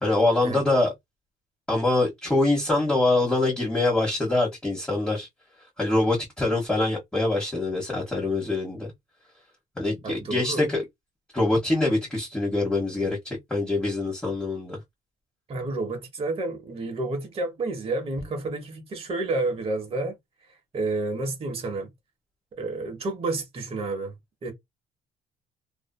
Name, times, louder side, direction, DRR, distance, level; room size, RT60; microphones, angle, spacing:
voice 1, 0.0-0.9 1.7-5.3 5.8-8.9 9.8-10.8 11.3-14.8, left 2 dB, 5° left, 1.2 m, -24 dB
voice 2, 10.0-10.7 15.5-20.1 20.7-21.9 22.5-24.2 24.4-24.5, right 2 dB, 35° right, 1.0 m, -30 dB
2.6 x 2.4 x 2.2 m
cardioid pair, 110°, 17 cm